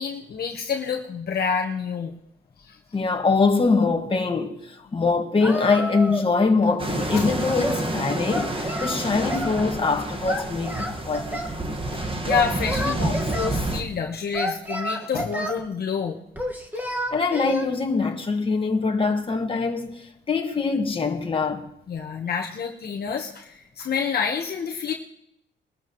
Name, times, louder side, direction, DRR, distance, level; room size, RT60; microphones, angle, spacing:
voice 1, 0.0-2.1 2.6-2.8 7.1-7.2 11.9-16.2 16.7-16.8 21.9-24.9, left 6 dB, 50° left, 1.3 m, -28 dB
voice 2, 2.9-11.4 17.1-21.7, left 4 dB, 25° left, 1.8 m, -23 dB
Singing, 5.4-6.3 6.6-7.8 8.3-9.6 10.3-11.6 12.3-13.5 14.3-15.6 16.4-17.7, equal, 10° right, 1.8 m, -30 dB
sound 1, 6.8-13.8, right 1 dB, 25° right, 1.7 m, -29 dB
22.0 x 12.5 x 3.2 m
cardioid pair, 90°, 20 cm